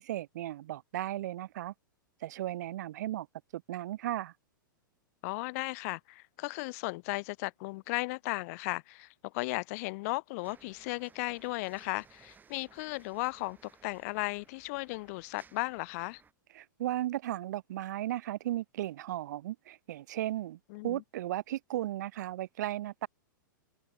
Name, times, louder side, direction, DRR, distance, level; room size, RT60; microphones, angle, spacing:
voice 1, 0.0-1.7 2.2-3.3 3.5-4.3 16.5-20.6 20.8-23.1, right 14 dB, 55° right, 1.0 m, -35 dB
voice 2, 5.2-16.2 20.7-21.0, left 25 dB, 45° left, 4.3 m, -36 dB
sound 1, 10.4-16.3, right 6 dB, 15° right, 7.1 m, -61 dB
figure-of-eight pair, 105°, 11 cm